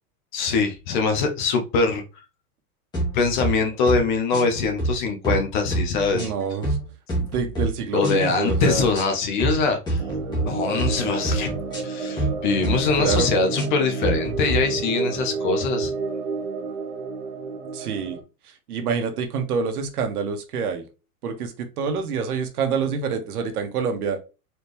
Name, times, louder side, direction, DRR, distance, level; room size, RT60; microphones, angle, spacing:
voice 1, 0.3-2.0 3.1-6.2 7.9-10.0 10.4-11.5 11.8-15.9, left 4 dB, 35° left, 0.7 m, -23 dB
sound 1, 2.9-3.5 3.9-4.0 4.3-4.9 5.2-5.4 5.7-6.8 7.1-7.7 8.0-8.2 8.5-9.0 9.4-9.6 9.9-10.4 10.8-11.0 11.2-11.8 12.2-12.3 12.6-13.2 13.6-14.6, right 2 dB, 10° left, 1.3 m, -26 dB
voice 2, 6.1-6.8 7.2-8.8 13.0-13.3 17.7-18.2 18.7-20.8 21.2-24.2, right 5 dB, 80° right, 1.3 m, -27 dB
sound 2, 10.0-18.2, right 4 dB, 50° right, 1.1 m, -30 dB
4.2 x 3.4 x 3.0 m
supercardioid pair, 170°, 44 cm